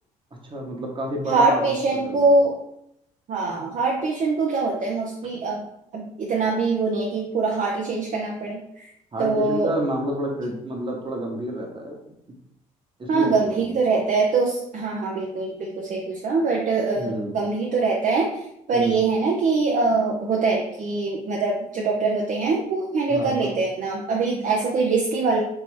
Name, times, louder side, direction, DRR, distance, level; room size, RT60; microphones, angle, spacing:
voice 1, 0.4-2.3 9.1-12.0 13.0-13.7 16.9-17.4 18.7-19.0 23.1-23.5, equal, 25° right, 0 dB, 1.1 m, -29 dB
voice 2, 1.3-2.6 3.3-5.7 5.9-8.9 9.2-9.9 13.1-25.4, right 3 dB, 45° right, -1 dB, 0.6 m, -23 dB
3.3 x 2.9 x 3.2 m, 0.77 s
hypercardioid pair, 50°, 19 cm